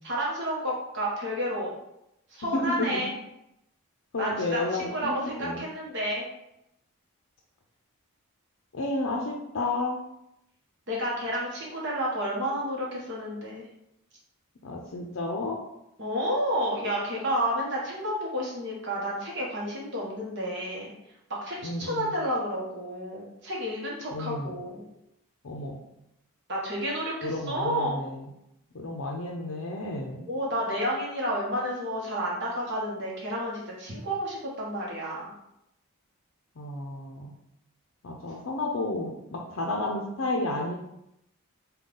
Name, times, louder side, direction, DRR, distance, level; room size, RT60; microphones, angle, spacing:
voice 1, 0.0-1.7 2.3-3.1 4.2-6.3 10.9-13.6 16.0-20.9 21.4-24.8 26.5-28.0 30.3-35.2, equal, 50° right, -4 dB, 0.9 m, -30 dB
voice 2, 2.5-3.0 4.1-5.1 5.4-5.6 8.7-10.0 14.6-15.6 21.6-22.1 24.1-24.6 25.4-25.8 27.2-28.2 28.7-30.3 36.6-37.3 38.0-40.8, left 2 dB, 60° left, 1 dB, 0.5 m, -31 dB
5.2 x 2.3 x 3.8 m, 0.83 s
head